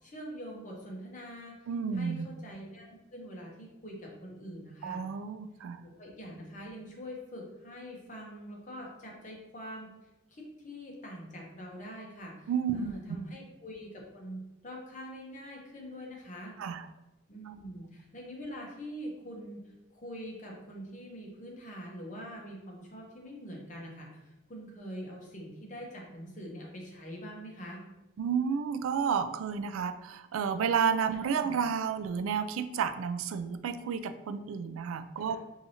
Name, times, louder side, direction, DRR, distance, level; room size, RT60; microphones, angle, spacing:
voice 1, 0.0-1.6 1.9-5.0 5.8-9.9 10.3-16.5 17.3-19.6 19.9-27.8 31.1-31.5 35.2-35.4, equal, 35° left, -1 dB, 0.8 m, -44 dB
voice 2, 1.7-2.3 4.8-5.8 12.5-12.9 16.6-16.9 17.5-17.6 28.2-35.4, right 6 dB, 85° right, 12 dB, 0.3 m, -31 dB
4.7 x 2.7 x 2.7 m, 0.98 s
head